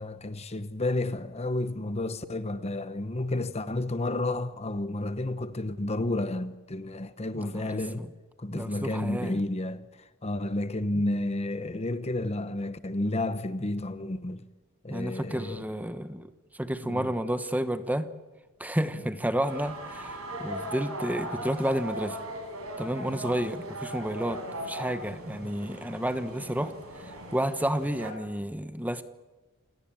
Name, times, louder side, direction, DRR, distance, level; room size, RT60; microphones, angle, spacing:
voice 1, 0.0-8.1 8.4-9.9 10.2-14.4 14.8-15.7 16.8-17.1 23.1-23.2 25.4-25.5, left 2 dB, 30° left, 1.0 m, -31 dB
voice 2, 7.3-8.1 8.5-9.4 14.9-16.3 16.6-18.1 18.6-22.2 22.8-26.7 27.0-29.0, right 1 dB, 5° right, 1.1 m, -31 dB
sound 1, 19.4-28.1, right 1 dB, 80° right, 7.0 m, -39 dB
28.5 x 18.0 x 8.7 m
head